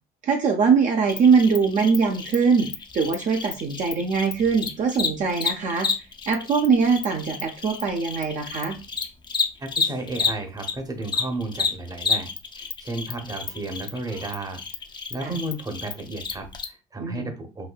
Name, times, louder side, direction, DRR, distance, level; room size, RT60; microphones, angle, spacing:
voice 1, 0.2-2.7 2.9-5.9 6.3-8.8 15.2-15.3 17.0-17.3, right 5 dB, 50° right, 2 dB, 0.6 m, -22 dB
Cricket, 1.1-10.7 11.0-16.6, left 5 dB, 25° left, 0.5 m, -30 dB
voice 2, 9.6-12.3 12.6-14.6 15.1-17.7, right 2 dB, 20° right, 5 dB, 0.8 m, -33 dB
4.1 x 2.6 x 2.3 m, 0.29 s
cardioid pair, 110°, 17 cm